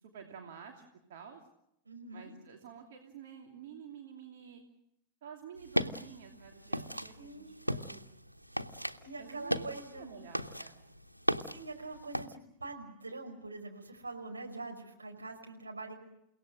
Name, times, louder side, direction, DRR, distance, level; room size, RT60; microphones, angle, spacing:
voice 1, 0.0-1.4 2.1-4.6 5.2-8.2 9.2-9.7 9.9-10.8, right 7 dB, 55° right, 2 dB, 2.7 m, -50 dB
voice 2, 1.9-2.3 7.2-7.6 9.0-10.1 11.4-15.9, right 3 dB, 80° right, 3 dB, 5.2 m, -44 dB
sound 1, 5.6-12.3, equal, 90° left, 0.9 m, -37 dB
29.5 x 17.5 x 7.8 m, 0.79 s
figure-of-eight pair, 90°, 0 cm